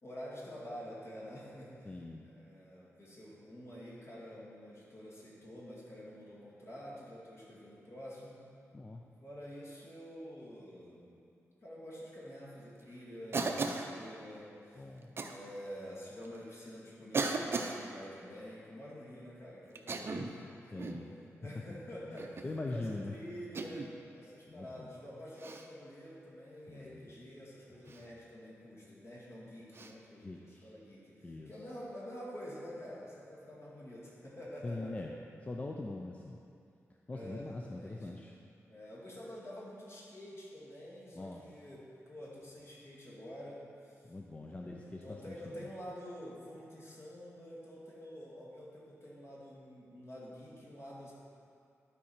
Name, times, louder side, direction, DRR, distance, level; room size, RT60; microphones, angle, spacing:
voice 1, 0.0-1.9 2.2-8.4 9.2-11.1 11.6-14.9 15.2-20.9 21.4-22.4 22.7-35.1 37.1-38.3 38.7-44.1 44.5-51.1, equal, 55° left, -6 dB, 2.2 m, -48 dB
voice 2, 1.8-2.3 8.7-9.0 14.7-15.1 20.1-20.3 20.7-21.1 22.1-23.1 24.5-24.9 26.7-27.1 27.9-28.0 30.2-30.7 31.2-31.6 34.6-35.1 35.5-36.4 37.1-38.4 41.1-41.4 44.0-45.7, left 2 dB, 25° left, 1 dB, 0.4 m, -42 dB
Cough, 13.3-13.9 15.2-15.4 16.2-16.3 17.1-17.8 19.7-20.4 20.8-21.1 22.2-22.5 23.5-23.9 25.4-25.7 27.9-28.0 29.7-29.9, right 3 dB, 50° right, 0.6 m, -36 dB
11.5 x 4.8 x 4.3 m, 2.5 s
wide cardioid pair, 110°, 5 cm